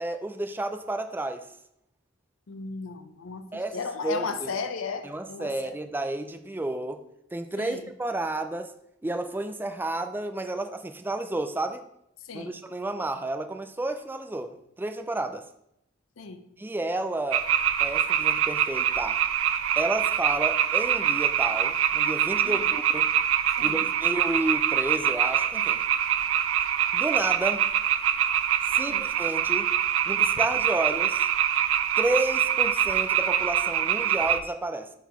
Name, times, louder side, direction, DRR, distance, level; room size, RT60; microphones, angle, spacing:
voice 1, 0.0-1.5 3.5-3.8 4.0-4.6 5.0-7.0 7.3-8.7 9.0-11.8 12.3-15.4 16.6-17.5 17.8-19.2 19.8-23.1 23.6-25.8 26.9-27.7 28.7-29.7 30.1-31.3 32.0-34.9, right 2 dB, 10° right, 0.3 m, -31 dB
voice 2, 2.5-5.8 7.6-7.9 12.3-12.6 16.2-16.4 22.4-22.7 23.6-23.9 28.8-29.0, left 4 dB, 75° left, 0.6 m, -35 dB
sound 1, 17.3-34.4, right 10 dB, 85° right, 0.4 m, -24 dB
4.7 x 3.9 x 5.3 m
head